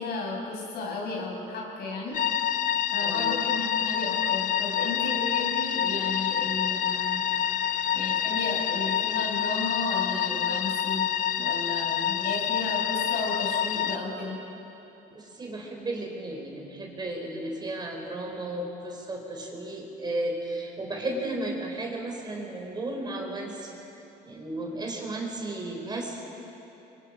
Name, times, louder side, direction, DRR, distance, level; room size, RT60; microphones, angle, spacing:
voice 1, 0.0-2.2 2.9-7.2 7.9-11.1 11.4-14.4, left 2 dB, 70° left, -2 dB, 6.3 m, -34 dB
sound 1, 2.1-14.0, left 9 dB, 50° left, 0.9 m, -27 dB
voice 2, 3.0-3.4 15.1-23.7 24.2-26.2, right 1 dB, 25° right, 1 dB, 4.1 m, -34 dB
25.0 x 24.0 x 5.2 m, 3.0 s
cardioid pair, 110°, 17 cm